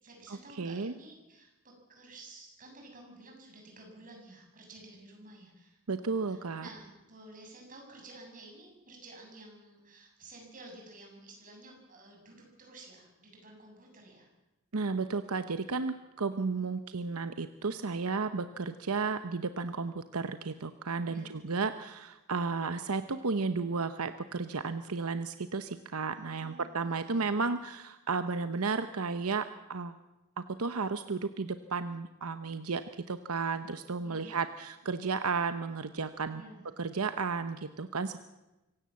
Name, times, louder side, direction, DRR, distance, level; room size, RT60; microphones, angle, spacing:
voice 1, 0.0-14.3 16.5-16.6 21.1-21.6 26.1-27.5 34.0-34.4 36.3-36.7, right 2 dB, 40° right, 1 dB, 7.2 m, -52 dB
voice 2, 0.5-0.9 5.9-6.7 14.7-30.0 30.4-36.4 36.8-38.2, right 4 dB, 80° right, 10 dB, 0.9 m, -33 dB
25.0 x 16.5 x 7.6 m, 1.0 s
head